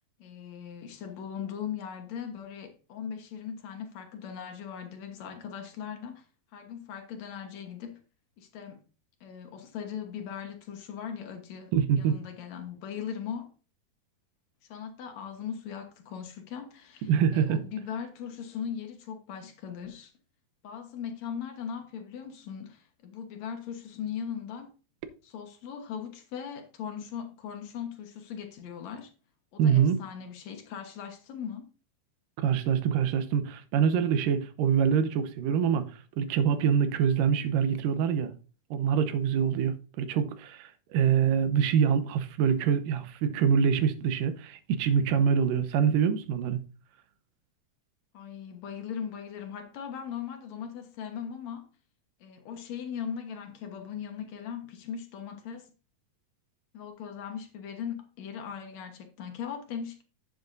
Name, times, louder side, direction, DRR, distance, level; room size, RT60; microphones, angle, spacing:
voice 1, 0.2-6.3 6.5-8.0 8.4-8.8 9.2-13.5 14.7-20.1 20.6-24.7 25.2-29.1 29.5-31.7 48.1-51.7 52.2-55.7 56.7-60.0, left 7 dB, 60° left, 2.3 m, -39 dB
voice 2, 11.7-12.2 17.0-17.6 29.6-30.0 32.4-38.3 38.7-46.6, right 7 dB, 85° right, 2.4 m, -25 dB
10.5 x 7.8 x 2.6 m
omnidirectional pair, 3.8 m